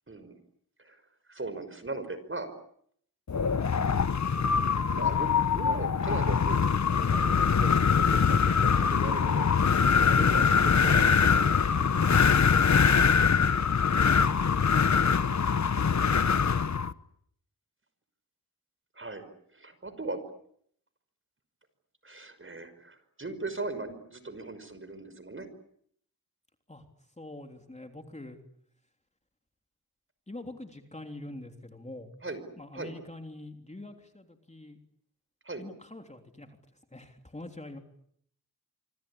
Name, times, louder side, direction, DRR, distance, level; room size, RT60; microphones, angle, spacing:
voice 1, 0.1-0.4 0.8-1.0 1.3-2.5 4.9-6.6 6.9-9.5 10.0-11.6 14.1-14.4 18.9-19.2 19.5-20.2 22.0-25.5 32.2-32.4 32.7-32.9 35.4-35.6, right 3 dB, 35° right, 11 dB, 5.6 m, -39 dB
Wind, 3.3-16.9, left 6 dB, 50° left, 1.2 m, -23 dB
voice 2, 27.2-28.4 30.3-32.1 32.6-34.8 35.6-36.6 36.9-37.8, left 2 dB, 20° left, 5 dB, 3.3 m, -45 dB
26.0 x 25.5 x 8.7 m, 0.69 s
cardioid pair, 65°, 37 cm